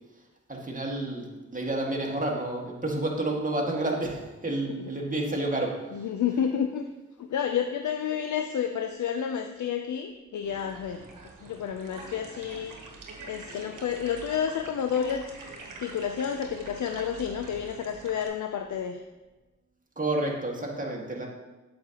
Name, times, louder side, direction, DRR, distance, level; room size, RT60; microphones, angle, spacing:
voice 1, 0.5-5.8 20.0-21.3, right 2 dB, 25° right, -1 dB, 1.9 m, -30 dB
voice 2, 5.9-6.8 7.2-11.1 11.4-12.8 13.3-15.2 15.8-19.0, left 8 dB, 70° left, 7 dB, 0.5 m, -30 dB
sound 1, 10.4-18.3, right 3 dB, 85° right, 1.1 m, -45 dB
8.4 x 6.5 x 2.9 m, 1.1 s
cardioid pair, 45°, 31 cm